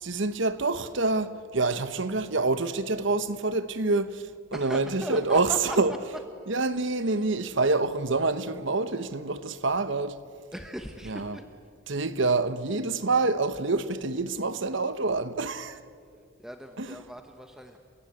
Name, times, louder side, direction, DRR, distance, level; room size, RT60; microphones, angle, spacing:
voice 1, 0.0-5.9 6.5-10.2 11.0-11.4 11.9-15.8 16.8-17.0, right 3 dB, 65° right, 1.1 m, -27 dB
voice 2, 4.5-5.8 10.5-11.4 16.4-17.8, equal, ahead, 1.1 m, -38 dB
30.0 x 17.0 x 8.9 m
head